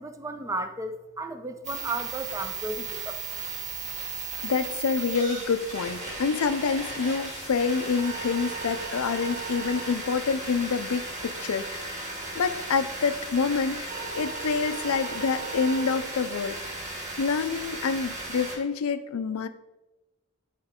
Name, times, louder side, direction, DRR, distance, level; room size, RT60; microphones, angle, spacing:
voice 1, 0.0-3.2, right 2 dB, 15° right, 7 dB, 0.5 m, -34 dB
sound 1, 1.6-18.6, right 3 dB, 35° right, 1.9 m, -35 dB
voice 2, 4.4-12.0 12.3-16.8 17.2-19.5, left 5 dB, 80° left, 12 dB, 0.5 m, -27 dB
sound 2, 11.0-16.5, left 2 dB, 55° left, 0.8 m, -51 dB
10.0 x 4.4 x 3.6 m, 1.0 s
head